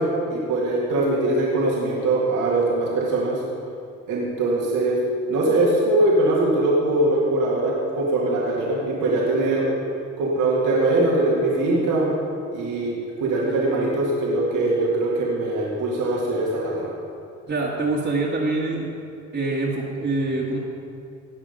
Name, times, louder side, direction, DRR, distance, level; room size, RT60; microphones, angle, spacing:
voice 1, 0.0-3.4 4.1-5.0 5.3-9.7 10.2-12.1 12.5-16.9, right 2 dB, 85° right, -4 dB, 2.1 m, -22 dB
voice 2, 17.5-18.9 19.3-20.6, right 2 dB, 40° right, -5 dB, 1.7 m, -25 dB
18.0 x 6.1 x 5.2 m, 2.4 s
cardioid pair, 90°, 30 cm